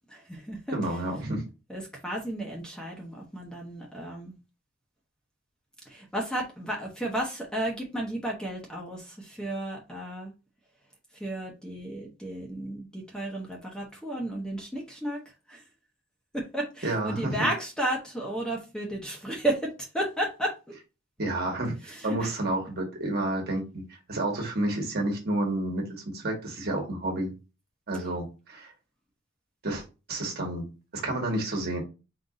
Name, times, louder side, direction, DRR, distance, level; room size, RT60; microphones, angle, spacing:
voice 1, 0.1-0.8 1.7-4.3 5.9-10.3 11.1-15.2 15.5-15.6 16.3-20.5 21.9-22.3, right 1 dB, 5° left, 0.8 m, -33 dB
voice 2, 0.7-1.4 16.8-17.5 21.2-23.8 24.1-27.3 27.9-28.7 29.6-29.8 30.1-30.7 30.9-31.8, right 1 dB, 50° right, 1.4 m, -30 dB
3.9 x 2.6 x 3.6 m
head